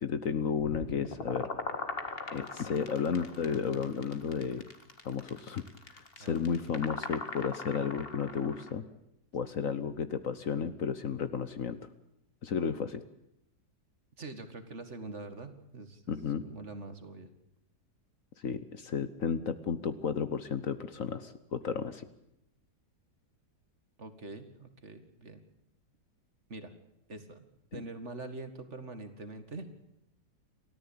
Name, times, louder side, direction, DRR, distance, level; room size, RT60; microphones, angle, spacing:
voice 1, 0.0-1.5 2.3-4.7 5.0-5.6 5.9-8.8 9.3-11.8 12.4-13.0 16.1-16.4 18.4-22.1 27.7-27.8, left 6 dB, 55° left, 12 dB, 1.3 m, -33 dB
sound 1, 0.7-8.7, left 3 dB, 35° left, 1.9 m, -40 dB
voice 2, 6.2-6.6 9.6-9.7 14.2-16.0 16.4-17.3 24.0-25.4 26.5-26.7 27.1-27.4 27.7-29.7, right 2 dB, 45° right, 8 dB, 2.2 m, -44 dB
30.0 x 13.5 x 8.7 m, 0.82 s
omnidirectional pair, 1.8 m